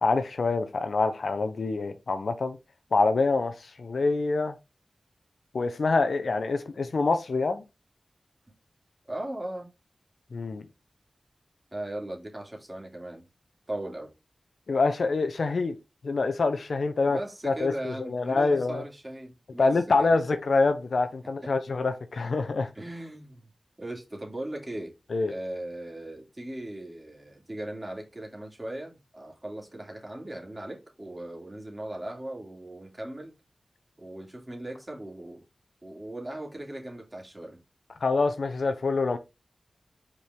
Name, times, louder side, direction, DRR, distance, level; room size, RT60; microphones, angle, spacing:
voice 1, 0.0-2.6 2.9-4.5 5.5-7.6 10.3-10.6 14.7-15.7 16.0-17.2 17.4-18.8 19.6-22.7 25.1-25.3 38.0-39.2, left 3 dB, 75° left, 0.9 m, -26 dB
voice 2, 9.0-9.7 11.7-13.2 13.7-14.1 17.1-20.1 22.7-23.5 23.8-24.9 25.3-33.3 34.0-35.4 35.8-37.6, right 1 dB, 25° right, 2.8 m, -38 dB
5.3 x 4.9 x 3.6 m
wide cardioid pair, 70°, 0 cm